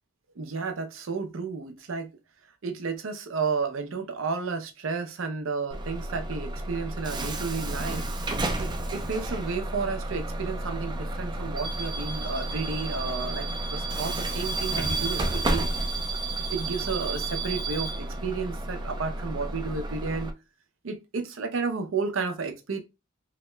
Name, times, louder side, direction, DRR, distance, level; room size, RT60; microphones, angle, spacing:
voice 1, 0.4-2.1 2.6-8.1 8.6-15.7 16.5-20.3 20.8-22.8, right 4 dB, 70° right, 0.6 m, -32 dB
Bus / Alarm, 5.7-20.3, right 2 dB, 20° right, 0.4 m, -31 dB
2.8 x 2.1 x 3.1 m
head